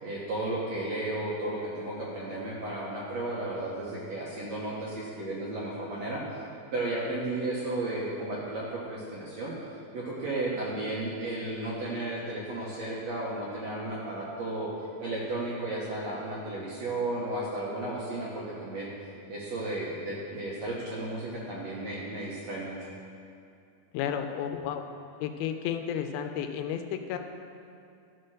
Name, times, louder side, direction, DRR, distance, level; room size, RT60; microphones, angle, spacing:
voice 1, 0.0-6.2 6.7-9.5 9.9-14.7 15.0-18.9 19.3-22.9, right 2 dB, 65° right, -5 dB, 1.7 m, -34 dB
voice 2, 23.9-24.8 25.2-27.2, left 9 dB, 85° left, 6 dB, 2.4 m, -32 dB
13.0 x 4.4 x 6.4 m, 2.5 s
omnidirectional pair, 4.3 m